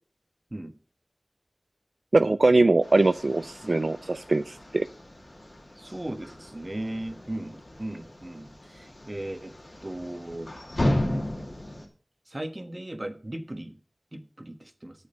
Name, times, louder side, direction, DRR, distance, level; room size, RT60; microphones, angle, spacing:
voice 1, 2.1-4.9, right 2 dB, 65° right, 11 dB, 0.4 m, -22 dB
sound 1, 2.8-11.9, left 1 dB, 50° left, 2.4 m, -34 dB
voice 2, 5.8-9.5 9.8-10.5 12.3-13.7 14.1-14.9, right 1 dB, 35° right, 9 dB, 1.2 m, -37 dB
8.7 x 6.4 x 6.4 m, 0.38 s
wide cardioid pair, 60°, 0 cm